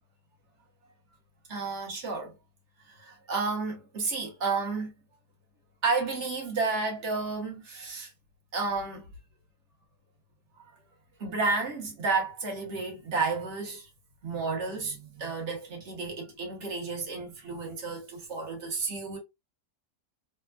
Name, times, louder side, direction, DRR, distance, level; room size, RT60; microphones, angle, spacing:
voice 1, 1.5-2.3 2.9-4.9 5.8-8.1 8.5-9.1 10.7-10.8 11.2-13.9 14.2-19.2, right 4 dB, 50° right, 1.2 m, -31 dB
3.4 x 2.1 x 2.3 m
omnidirectional pair, 1.7 m